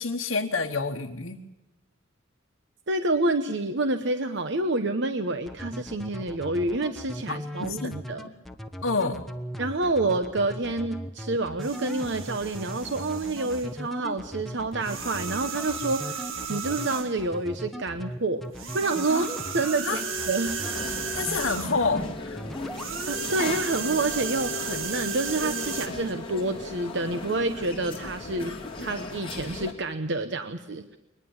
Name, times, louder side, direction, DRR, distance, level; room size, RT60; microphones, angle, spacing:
voice 1, 0.0-1.4 7.3-7.9 8.8-9.3 19.1-19.3 19.8-20.0 21.1-22.4, left 4 dB, 75° left, 1 dB, 1.2 m, -28 dB
voice 2, 2.9-8.3 9.6-18.4 18.7-19.3 19.5-20.6 23.1-28.5 28.8-30.8, right 2 dB, 60° right, 8 dB, 1.0 m, -28 dB
sound 1, 5.5-19.8 20.2-20.8 21.1-22.1 22.4-22.9, equal, ahead, 1.2 m, -38 dB
sound 2, 11.6-13.8 14.8-17.2 18.5-21.9 22.7-25.9, right 5 dB, 85° right, 1.7 m, -34 dB
sound 3, 20.6-29.7, left 2 dB, 25° left, 2.7 m, -37 dB
22.5 x 20.5 x 7.2 m, 0.97 s
head